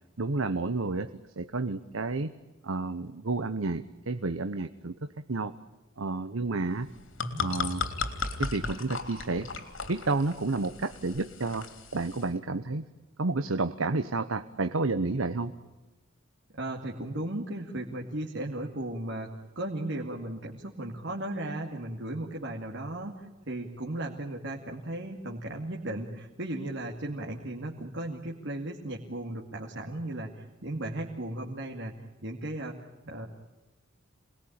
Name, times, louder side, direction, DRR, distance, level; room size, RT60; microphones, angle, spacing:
voice 1, 0.2-1.1 1.4-2.3 2.6-4.9 5.3-5.5 6.0-6.9 7.4-7.9 8.4-9.5 9.9-12.8 13.2-15.5, right 3 dB, 80° right, 9 dB, 1.0 m, -30 dB
sound 1, 6.8-12.3, left 4 dB, 70° left, 3.3 m, -36 dB
voice 2, 16.5-31.9 32.2-32.8 33.0-33.3, right 1 dB, 60° right, 0 dB, 2.5 m, -36 dB
27.5 x 20.5 x 8.8 m, 1.1 s
head